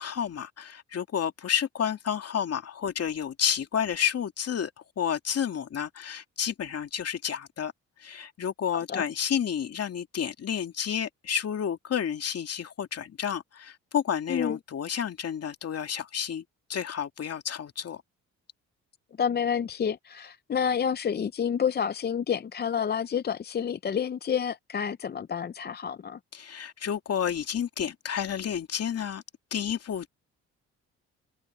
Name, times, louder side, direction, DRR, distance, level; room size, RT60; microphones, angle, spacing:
voice 1, 0.0-7.7 8.0-16.4 16.7-18.0 26.3-29.2 29.5-30.1, left 8 dB, 55° left, 2.6 m, -30 dB
voice 2, 19.2-26.2, left 7 dB, 35° left, 0.6 m, -29 dB
cardioid pair, 90°, 30 cm